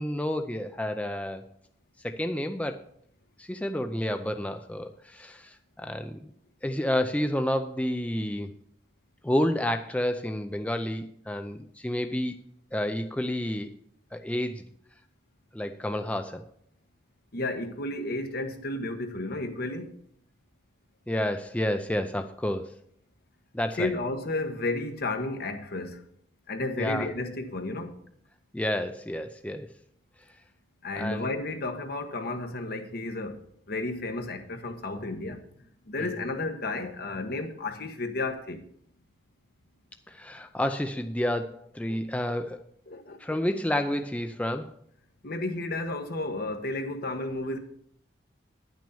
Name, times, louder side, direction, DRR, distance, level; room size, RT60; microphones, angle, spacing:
voice 1, 0.0-1.4 2.0-2.8 3.4-6.3 6.6-8.5 9.2-12.4 12.7-13.7 14.1-14.6 15.5-16.4 21.1-22.8 23.5-23.9 26.8-27.1 28.5-29.7 31.0-31.3 36.0-36.1 40.1-42.6 43.2-44.7, left 1 dB, 10° left, 0.4 m, -30 dB
voice 2, 17.3-19.9 23.8-26.0 26.5-27.9 30.8-33.4 33.7-35.4 35.9-38.6 41.9-42.0 42.9-43.4 45.2-47.6, left 2 dB, 60° left, 1.2 m, -32 dB
10.0 x 6.2 x 6.9 m
head